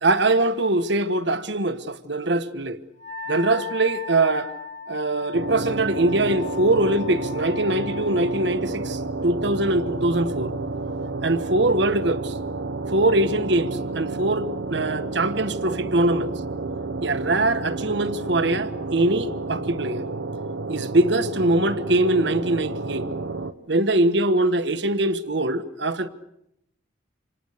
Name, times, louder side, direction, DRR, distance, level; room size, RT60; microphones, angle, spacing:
voice 1, 0.0-2.8 3.3-4.5 4.9-10.5 11.2-12.4 12.9-16.3 17.0-20.1 20.7-23.1 23.7-26.1, right 2 dB, 60° right, 1.4 m, -22 dB
Wind instrument woodwind instrument, 3.0-8.5, left 5 dB, 40° right, 1.7 m, -37 dB
sound 1, 5.3-23.5, right 3 dB, 90° right, 1.2 m, -31 dB
28.5 x 27.0 x 6.7 m
head